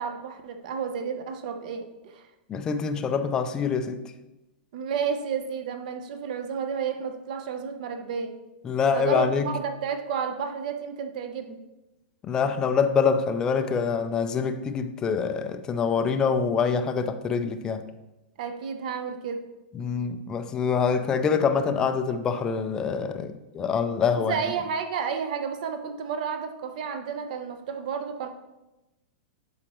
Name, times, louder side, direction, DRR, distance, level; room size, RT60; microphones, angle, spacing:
voice 1, 0.0-2.3 4.7-8.4 8.9-11.6 18.4-19.5 24.2-28.3, right 6 dB, 45° right, 0.8 m, -31 dB
voice 2, 2.5-4.0 8.6-9.5 12.2-17.8 19.7-24.4, left 6 dB, 10° left, 0.3 m, -25 dB
11.5 x 4.3 x 3.0 m
supercardioid pair, 175°, 6 cm